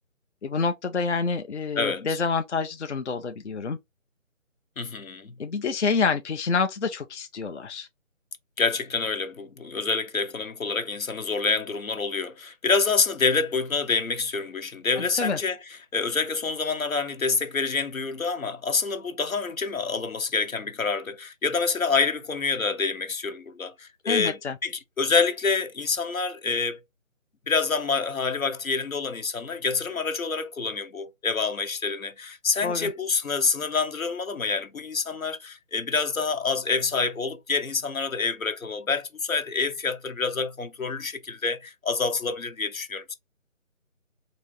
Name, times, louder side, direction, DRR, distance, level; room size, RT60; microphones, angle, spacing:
voice 1, 0.4-3.8 5.4-7.9 15.0-15.4 24.1-24.6 32.6-32.9, left 4 dB, 60° left, 0.6 m, -27 dB
voice 2, 1.7-2.2 4.8-5.3 8.6-15.6 15.9-26.8 27.5-43.1, left 4 dB, 85° left, 1.1 m, -27 dB
3.9 x 2.8 x 3.1 m
figure-of-eight pair, 165°, 40 cm